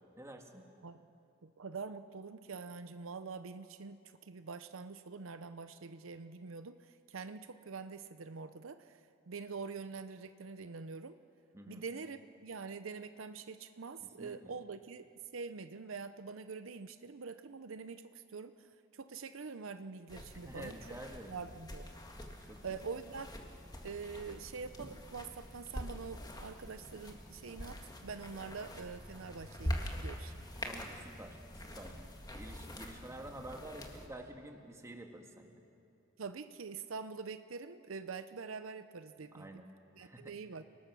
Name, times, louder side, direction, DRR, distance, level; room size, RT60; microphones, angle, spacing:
voice 1, 0.2-0.6 11.5-11.8 14.0-14.5 20.4-21.3 22.4-22.6 30.6-32.0 32.3-35.6 39.3-39.7 40.0-40.3, right 1 dB, 15° right, 3 dB, 1.7 m, -49 dB
voice 2, 1.4-11.2 11.7-20.8 21.3-21.9 22.6-23.3 23.8-30.5 36.2-39.6 40.0-40.7, right 5 dB, 70° right, 11 dB, 0.6 m, -45 dB
sound 1, 20.1-34.1, equal, 20° left, 1.8 m, -45 dB
29.5 x 19.0 x 6.1 m, 2.5 s
head